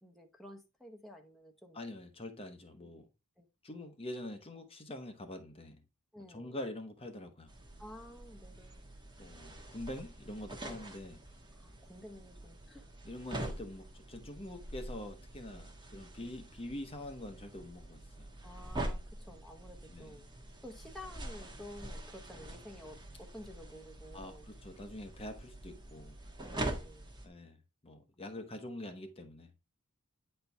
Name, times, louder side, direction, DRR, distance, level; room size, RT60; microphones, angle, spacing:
voice 1, 0.0-1.8 3.4-3.5 6.1-6.5 7.8-8.9 10.6-10.9 11.6-12.9 15.5-15.6 16.2-16.3 18.4-19.0 19.3-20.3 20.6-24.5 26.4-27.1, left 1 dB, ahead, 1.0 m, -52 dB
voice 2, 1.7-3.0 3.6-5.8 6.3-7.5 9.2-11.2 13.0-18.3 19.9-20.2 24.1-26.2 27.2-27.6 27.8-29.5, left 1 dB, 25° left, 0.9 m, -45 dB
sound 1, 7.5-27.3, right 1 dB, 20° right, 1.4 m, -45 dB
9.2 x 4.4 x 3.4 m
head